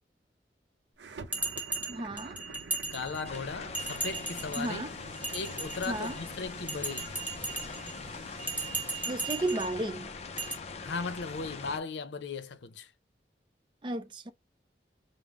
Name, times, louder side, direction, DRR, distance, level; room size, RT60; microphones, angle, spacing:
sound 1, 1.0-10.1, right 4 dB, 90° right, 0.6 m, -49 dB
Bell, 1.3-3.4 3.7-4.7 5.2-6.2 6.7-7.9 8.4-9.7 10.4-10.5, right 3 dB, 10° right, 1.0 m, -36 dB
voice 1, 1.9-2.4 4.6-4.9 5.9-6.2 9.1-10.1 13.8-14.3, right 1 dB, 25° right, 0.5 m, -33 dB
voice 2, 2.9-4.8 5.3-7.1 10.8-12.9, left 4 dB, 85° left, 0.6 m, -37 dB
sound 2, 3.2-11.8, left 4 dB, 35° left, 0.4 m, -42 dB
5.1 x 2.0 x 3.5 m
head